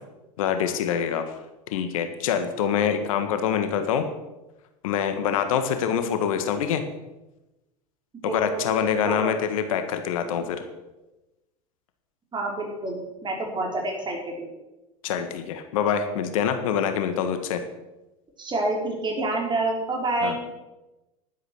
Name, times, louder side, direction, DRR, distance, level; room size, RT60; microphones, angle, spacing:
voice 1, 0.4-1.2 1.7-4.0 4.8-6.8 8.2-10.6 15.0-17.6 20.2-20.4, left 8 dB, 70° left, 8 dB, 1.6 m, -25 dB
voice 2, 8.2-8.8 9.0-9.3 12.3-14.5 18.4-20.4, right 2 dB, 25° right, 0 dB, 4.9 m, -28 dB
11.5 x 9.8 x 6.5 m, 1.0 s
hypercardioid pair, 85°, 18 cm